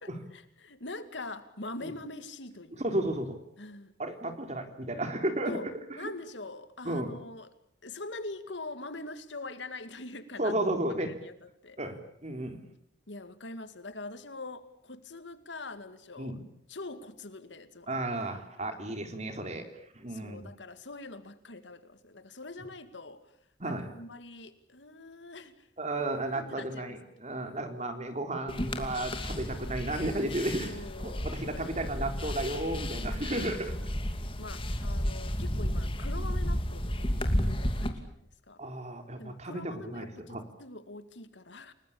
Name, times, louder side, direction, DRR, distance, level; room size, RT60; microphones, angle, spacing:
voice 1, 0.0-2.8 3.6-3.9 5.5-5.7 6.0-7.5 7.8-10.5 10.9-11.8 13.1-16.4 16.7-18.0 19.4-19.7 20.1-23.2 23.6-25.7 26.0-27.0 30.6-31.8 33.0-33.7 34.4-38.1 38.5-38.6 39.2-41.7, left 2 dB, 80° left, 11 dB, 2.3 m, -44 dB
voice 2, 2.8-3.4 4.0-5.6 6.0-6.1 6.8-7.2 10.4-11.1 11.8-12.6 16.2-16.4 17.9-19.7 19.9-20.5 23.6-23.9 25.8-33.7 38.6-40.4, right 1 dB, 40° right, 7 dB, 3.7 m, -33 dB
sound 1, 28.5-37.9, equal, 30° left, 2.7 m, -32 dB
30.0 x 19.5 x 8.8 m, 0.70 s
head